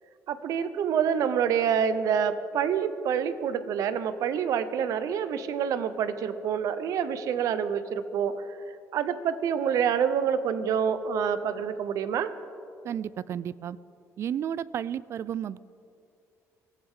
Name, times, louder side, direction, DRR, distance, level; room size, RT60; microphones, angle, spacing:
voice 1, 0.3-8.4 8.9-12.3, right 7 dB, 65° right, 12 dB, 0.8 m, -27 dB
voice 2, 12.8-13.8 14.2-15.6, right 9 dB, 45° right, 19 dB, 0.3 m, -32 dB
21.5 x 15.0 x 3.7 m, 2.5 s
cardioid pair, 140°, 6 cm